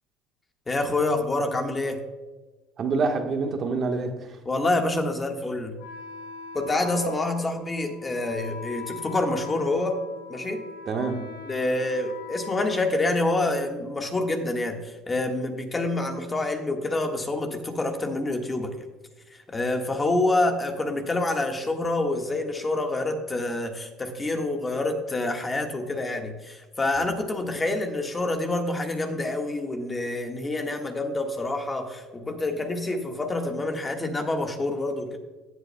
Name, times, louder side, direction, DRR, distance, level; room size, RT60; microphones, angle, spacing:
voice 1, 0.7-2.0 4.4-5.8 6.5-10.0 10.3-10.6 11.5-18.8 19.3-35.2, left 2 dB, 20° left, 4 dB, 1.5 m, -27 dB
voice 2, 2.8-4.4 10.9-11.3, right 4 dB, 45° right, 4 dB, 1.3 m, -26 dB
Wind instrument woodwind instrument, 5.8-13.5, left 6 dB, 90° left, 2.7 m, -41 dB
16.0 x 8.1 x 2.2 m, 1.2 s
supercardioid pair, 90°, 0 cm